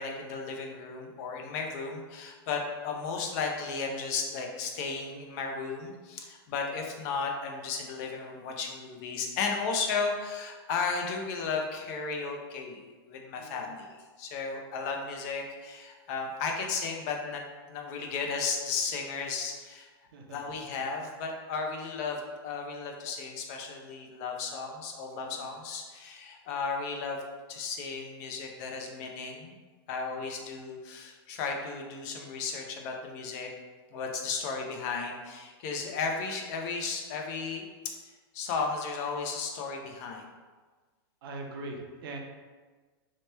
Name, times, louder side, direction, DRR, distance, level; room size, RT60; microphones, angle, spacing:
voice 1, 0.0-12.8 13.1-17.4 17.7-19.9 20.3-27.2 27.5-29.5 29.9-33.5 33.9-37.6 38.3-40.2, left 4 dB, 45° left, 2 dB, 0.5 m, -34 dB
voice 2, 41.2-42.2, right 2 dB, 65° right, 2 dB, 0.6 m, -41 dB
2.9 x 2.1 x 3.2 m, 1.4 s
supercardioid pair, 150°, 13 cm